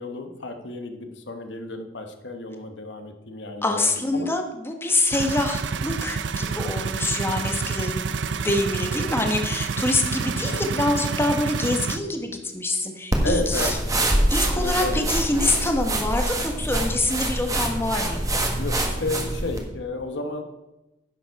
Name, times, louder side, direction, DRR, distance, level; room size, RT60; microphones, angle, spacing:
voice 1, 0.0-4.3 10.4-10.6 13.2-13.7 14.5-15.1 18.5-20.4, left 2 dB, 75° left, 6 dB, 1.1 m, -32 dB
voice 2, 3.6-13.8 14.3-18.4, left 2 dB, 15° left, 4 dB, 1.0 m, -26 dB
sound 1, 5.1-12.0, right 5 dB, 70° right, 0.5 m, -28 dB
sound 2, 13.1-19.6, right 1 dB, 20° right, 1.4 m, -25 dB
11.0 x 7.0 x 4.6 m, 0.96 s
head